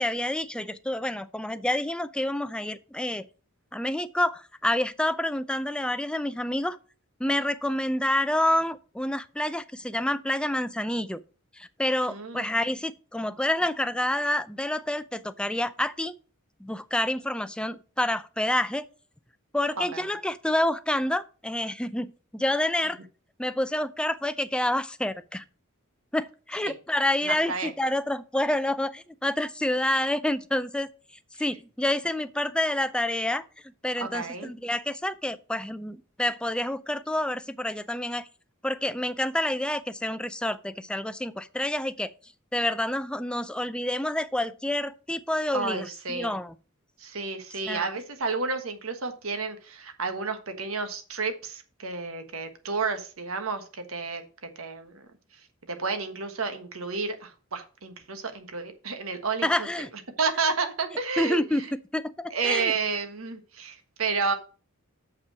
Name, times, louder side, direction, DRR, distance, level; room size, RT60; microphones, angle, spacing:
voice 1, 0.0-3.3 3.7-6.8 7.2-11.2 11.6-16.1 16.6-18.9 19.5-23.0 23.4-25.4 26.1-30.9 31.4-33.4 33.8-38.3 38.6-42.1 42.5-46.5 47.7-47.9 59.4-59.9 61.2-61.6 61.9-62.7, left 1 dB, 5° left, 0.4 m, -28 dB
voice 2, 12.1-12.5 19.8-20.0 26.7-26.8 27.2-27.7 34.0-34.5 45.5-46.4 47.0-54.2 54.6-55.0 55.7-59.7 60.2-61.7 62.3-64.3, right 4 dB, 75° right, 1.3 m, -31 dB
7.0 x 5.5 x 5.7 m
head